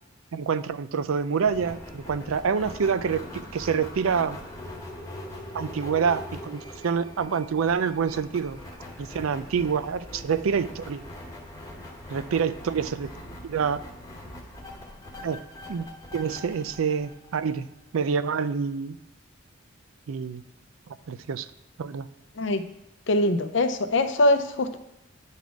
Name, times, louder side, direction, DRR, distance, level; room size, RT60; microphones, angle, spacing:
voice 1, 0.3-4.4 5.5-8.6 9.0-11.0 12.1-13.1 13.4-13.8 15.2-15.4 15.7-15.9 16.1-17.7 17.9-19.0 20.1-20.4 21.1-21.5 21.8-22.1, right 6 dB, 80° right, 14 dB, 0.4 m, -27 dB
sound 1, 1.4-17.9, left 1 dB, 15° left, 1.1 m, -42 dB
voice 2, 23.1-24.8, left 1 dB, 60° left, 10 dB, 0.6 m, -22 dB
10.5 x 4.2 x 4.6 m, 0.90 s
head